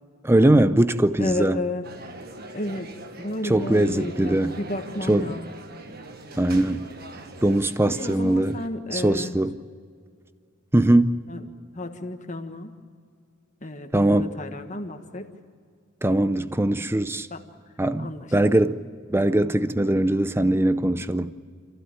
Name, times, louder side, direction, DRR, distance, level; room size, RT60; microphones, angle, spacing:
voice 1, 0.2-1.6 3.4-4.6 5.1-5.3 6.4-6.9 7.4-8.6 8.9-9.5 10.7-11.2 13.9-14.3 16.0-17.3 17.8-21.3, right 1 dB, 10° right, 0.6 m, -21 dB
voice 2, 1.2-1.9 2.5-5.4 7.8-9.4 11.3-11.5 11.7-12.8 13.6-15.3 17.3-17.4 18.0-18.3, left 1 dB, 40° left, 1.5 m, -32 dB
sound 1, 1.8-8.7, right 2 dB, 50° right, 1.5 m, -41 dB
27.0 x 15.5 x 8.9 m
head